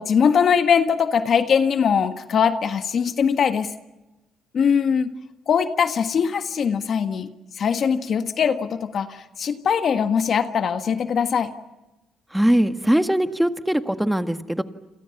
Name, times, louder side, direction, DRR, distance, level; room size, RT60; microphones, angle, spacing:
voice 1, 0.0-3.7 4.5-5.1 5.5-7.3 7.6-11.5, left 7 dB, 55° left, 8 dB, 1.6 m, -21 dB
voice 2, 12.3-14.6, right 1 dB, 5° right, 8 dB, 1.7 m, -21 dB
29.0 x 27.0 x 5.9 m, 1.0 s
cardioid pair, 90°, 0 cm